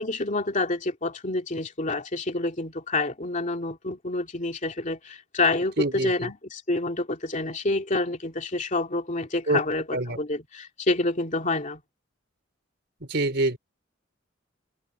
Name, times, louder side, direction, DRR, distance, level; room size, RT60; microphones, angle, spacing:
voice 1, 0.0-11.8, left 2 dB, 40° left, 2.7 m, -28 dB
voice 2, 5.8-6.3 9.5-9.6 9.9-10.2 13.1-13.6, right 2 dB, 60° right, 4.6 m, -25 dB
head